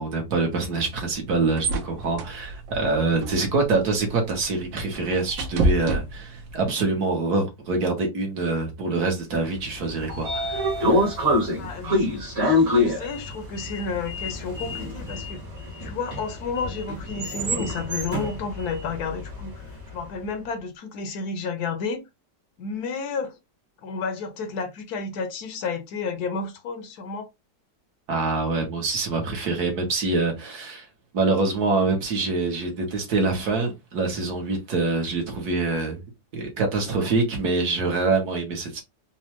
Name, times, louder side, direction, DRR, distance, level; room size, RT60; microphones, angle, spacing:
voice 1, 0.0-11.1 28.1-30.9 31.1-36.0 36.3-38.8, right 3 dB, 60° right, 1.5 m, -25 dB
sound 1, 0.9-6.7, right 2 dB, 85° right, 1.5 m, -30 dB
Sliding door, 9.7-19.8, left 1 dB, 40° right, 1.3 m, -26 dB
voice 2, 11.6-15.4 15.8-22.0 22.6-23.4 23.8-27.3, left 4 dB, 70° left, 1.1 m, -31 dB
4.1 x 2.2 x 2.9 m
omnidirectional pair, 1.9 m